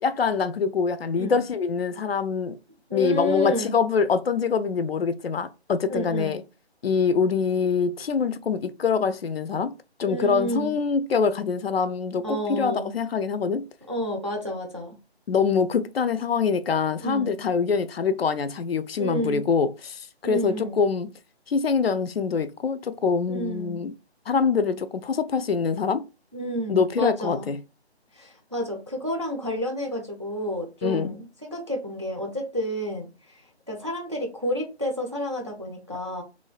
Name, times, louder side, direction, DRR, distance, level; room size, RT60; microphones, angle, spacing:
voice 1, 0.0-2.6 2.9-6.4 6.8-9.7 10.0-13.7 15.3-21.1 21.5-23.9 24.3-26.1 26.7-27.6 30.8-31.2, left 5 dB, 65° left, 0.4 m, -24 dB
voice 2, 2.9-3.7 5.9-6.4 10.0-10.7 12.2-12.9 13.9-14.9 17.0-17.4 19.0-19.4 20.2-20.8 23.3-23.8 26.3-27.5 28.1-33.1 33.7-36.2, equal, 30° right, 0.4 m, -30 dB
3.1 x 2.1 x 2.3 m
figure-of-eight pair, 165°, 33 cm